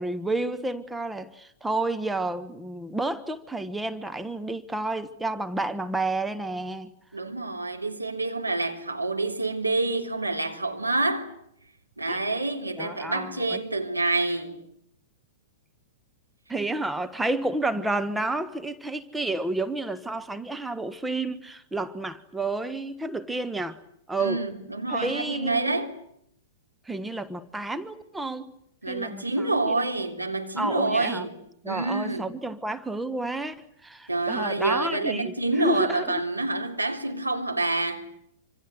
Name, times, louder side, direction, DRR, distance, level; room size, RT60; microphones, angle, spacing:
voice 1, 0.0-6.9 12.1-12.2 12.8-13.6 16.5-23.8 24.1-24.4 24.9-25.8 26.9-28.5 28.9-29.9 30.6-31.3 31.6-33.6 33.8-36.2, right 2 dB, 5° right, 1.3 m, -30 dB
voice 2, 7.1-11.3 12.0-14.6 24.2-25.9 28.8-31.4 31.7-32.3 34.1-38.1, right 2 dB, 90° right, 3.3 m, -27 dB
27.0 x 25.5 x 8.0 m
figure-of-eight pair, 105°, 0 cm